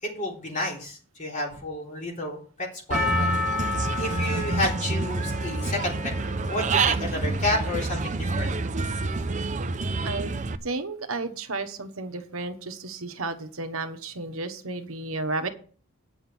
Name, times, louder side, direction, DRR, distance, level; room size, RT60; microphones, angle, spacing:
voice 1, 0.0-6.1 6.4-8.5, left 1 dB, 40° left, -1 dB, 3.4 m, -31 dB
Percussion, 2.9-7.3 7.9-8.0, left 5 dB, ahead, 1.2 m, -32 dB
Human voice / Bird, 2.9-10.6, right 3 dB, 35° right, 0.6 m, -28 dB
voice 2, 10.6-15.5, right 3 dB, 75° right, 8 dB, 1.2 m, -32 dB
9.1 x 6.1 x 7.1 m, 0.42 s
head